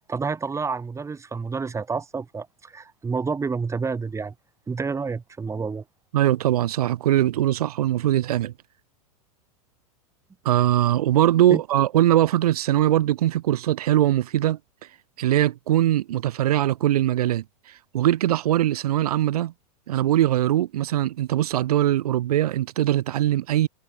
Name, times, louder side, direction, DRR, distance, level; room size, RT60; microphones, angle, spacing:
voice 1, 0.1-4.3 4.7-5.8 11.5-11.6, right 5 dB, 15° right, 4.8 m, -29 dB
voice 2, 6.1-8.5 10.4-14.6 15.2-17.4 17.9-19.5 19.9-23.7, right 13 dB, 80° right, 2.9 m, -21 dB
hypercardioid pair, 115°, 19 cm